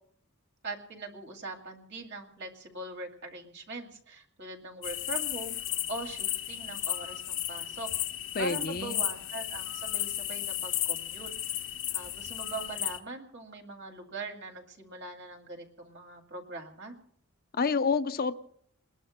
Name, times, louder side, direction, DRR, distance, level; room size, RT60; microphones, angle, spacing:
voice 1, 0.6-5.6 5.9-7.9 8.4-11.6 11.9-16.9, right 2 dB, 55° right, 1 dB, 2.5 m, -41 dB
sound 1, 4.8-13.0, left 12 dB, 60° left, 1.0 m, -34 dB
voice 2, 8.3-9.0 17.6-18.4, left 4 dB, 45° left, 11 dB, 0.7 m, -28 dB
29.0 x 21.0 x 2.2 m, 0.64 s
head